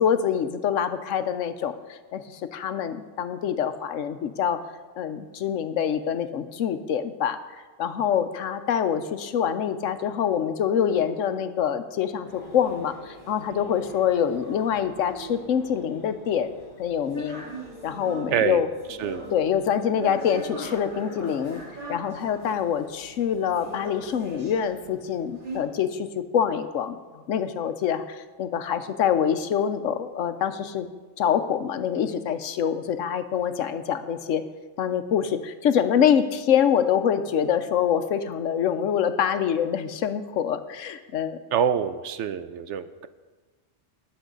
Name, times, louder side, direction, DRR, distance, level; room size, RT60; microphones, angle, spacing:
voice 1, 0.0-4.6 5.0-7.4 7.8-16.5 16.8-17.5 17.8-18.7 19.3-21.6 21.9-26.1 26.3-30.9 31.2-34.4 34.8-41.4, left 8 dB, 90° left, 10 dB, 1.1 m, -25 dB
sound 1, 12.2-25.6, right 1 dB, 40° right, 3.7 m, -41 dB
voice 2, 18.3-18.6 19.0-19.3 41.5-43.1, right 8 dB, 75° right, 12 dB, 0.9 m, -26 dB
20.0 x 7.1 x 3.9 m, 1.3 s
omnidirectional pair, 1.3 m